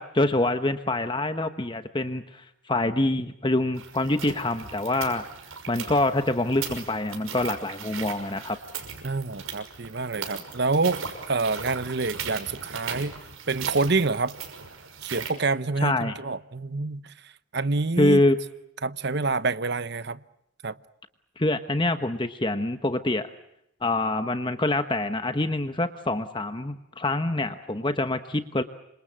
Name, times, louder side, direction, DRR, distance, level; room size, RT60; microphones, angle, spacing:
voice 1, 0.0-5.2 5.7-8.6 15.8-16.2 18.0-18.4 21.4-23.3 23.8-28.6, left 2 dB, 20° left, 1.1 m, -25 dB
sound 1, 3.7-15.3, right 6 dB, 85° right, 6.0 m, -38 dB
voice 2, 9.0-11.0 11.3-13.2 13.5-14.4 15.0-17.1 17.5-18.2 18.8-20.2 20.6-20.7, right 3 dB, 55° right, 0.9 m, -27 dB
28.0 x 26.0 x 7.4 m
head